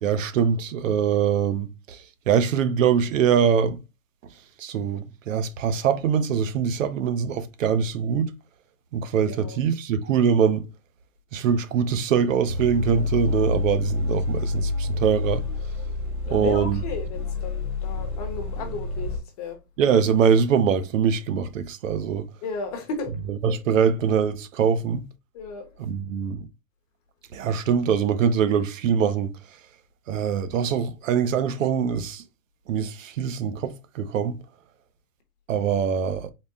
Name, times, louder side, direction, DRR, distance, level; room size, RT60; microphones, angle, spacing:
voice 1, 0.0-3.8 4.6-8.4 8.9-10.6 11.3-15.4 16.3-16.8 19.8-22.3 23.4-25.0 25.8-26.5 27.3-29.3 30.1-32.2 32.7-34.4 35.5-36.3, right 7 dB, 60° right, 0.7 m, -23 dB
voice 2, 9.3-9.6 16.3-19.6 22.4-23.1 25.3-25.7, left 4 dB, 25° left, 0.8 m, -34 dB
sound 1, 12.5-19.2, left 3 dB, ahead, 0.4 m, -28 dB
4.1 x 2.1 x 3.6 m
hypercardioid pair, 160°, 43 cm